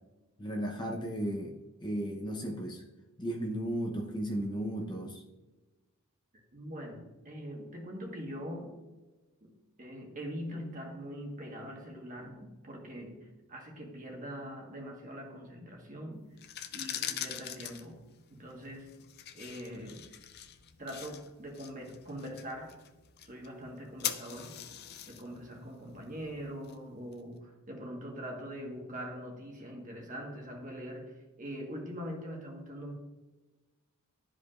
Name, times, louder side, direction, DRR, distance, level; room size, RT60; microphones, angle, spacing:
voice 1, 0.4-1.5 1.8-2.8 3.2-5.2, right 1 dB, 20° left, 0 dB, 0.8 m, -35 dB
voice 2, 6.5-8.8 9.4-16.3 16.7-18.0 18.3-18.9 19.3-20.1 20.8-22.8 23.2-24.6 25.1-32.9, equal, 35° right, 1 dB, 1.5 m, -43 dB
sound 1, 16.3-27.2, left 10 dB, 45° left, 0.5 m, -43 dB
12.5 x 5.0 x 2.5 m, 1.2 s
head